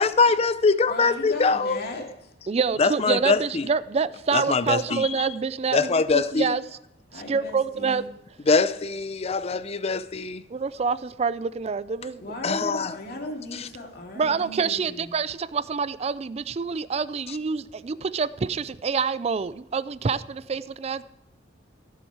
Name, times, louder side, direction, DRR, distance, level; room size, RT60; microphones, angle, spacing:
voice 1, 0.0-1.8 2.8-3.7 4.3-5.1 5.7-6.5 8.5-10.4 12.4-13.0, left 4 dB, 35° left, 0.5 m, -23 dB
voice 2, 0.9-2.3 7.1-8.0 12.2-15.1, left 2 dB, 55° left, 2.4 m, -37 dB
voice 3, 2.5-6.6 7.1-8.0 10.5-12.3 14.2-21.0, right 5 dB, 35° right, 0.4 m, -27 dB
15.0 x 7.1 x 4.7 m
head